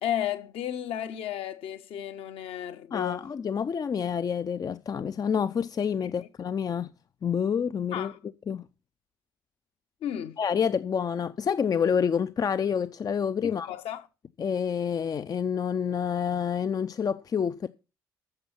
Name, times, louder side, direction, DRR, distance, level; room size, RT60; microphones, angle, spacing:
voice 1, 0.0-3.3 6.2-6.3 7.9-8.2 10.0-10.4 13.4-14.1, left 10 dB, 60° left, 1.2 m, -33 dB
voice 2, 2.9-6.9 7.2-8.1 8.5-8.6 10.4-13.7 14.4-17.7, left 7 dB, 35° left, 0.6 m, -28 dB
14.5 x 6.9 x 5.9 m
figure-of-eight pair, 45°, 11 cm